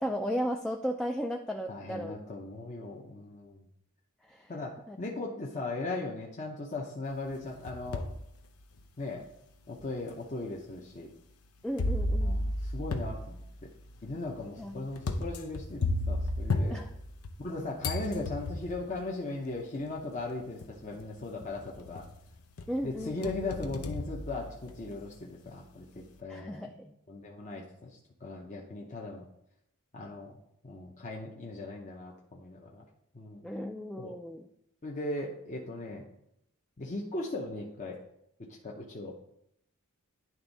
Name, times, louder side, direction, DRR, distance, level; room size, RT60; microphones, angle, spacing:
voice 1, 0.0-2.1 4.3-4.5 4.9-5.0 11.6-12.4 14.6-14.9 16.7-16.9 22.7-23.5 26.3-26.9 33.4-34.5, equal, ahead, 3 dB, 0.3 m, -35 dB
voice 2, 1.7-3.6 4.5-8.0 9.0-9.2 9.7-11.1 12.2-13.4 14.0-16.9 17.4-22.1 22.8-26.7 27.1-29.2 29.9-30.4 30.6-32.8 33.1-33.5 34.0-34.1 34.8-36.0 36.8-38.0 38.6-39.2, left 2 dB, 35° left, -2 dB, 0.7 m, -38 dB
sound 1, 7.3-8.2 8.8-8.9 9.8-9.9 11.8-17.5 17.8-18.8 20.0-20.1 20.6-21.0 21.4-22.2 22.6-24.9, left 1 dB, 85° left, 0.7 m, -33 dB
10.5 x 3.5 x 4.0 m, 0.77 s
head